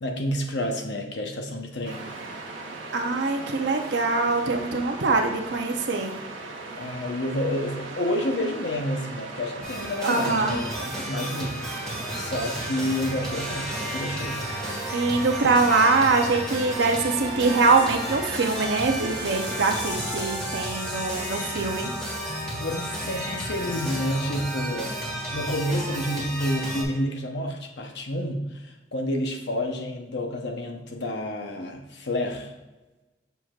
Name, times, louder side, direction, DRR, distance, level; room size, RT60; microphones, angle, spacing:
voice 1, 0.0-2.1 6.8-11.7 12.1-14.5 22.5-25.0 25.3-32.5, left 1 dB, 65° left, 3 dB, 0.9 m, -29 dB
Waves surf, 1.8-19.9, right 3 dB, 85° right, 1.1 m, -38 dB
voice 2, 2.9-6.1 10.0-10.6 14.9-21.9, right 3 dB, 70° right, 3 dB, 0.7 m, -23 dB
sound 1, 9.6-26.8, right 1 dB, 5° left, 1.5 m, -33 dB
sound 2, 17.4-24.1 24.3-24.7, left 2 dB, 85° left, 1.6 m, -41 dB
6.8 x 5.9 x 2.4 m, 1.1 s
head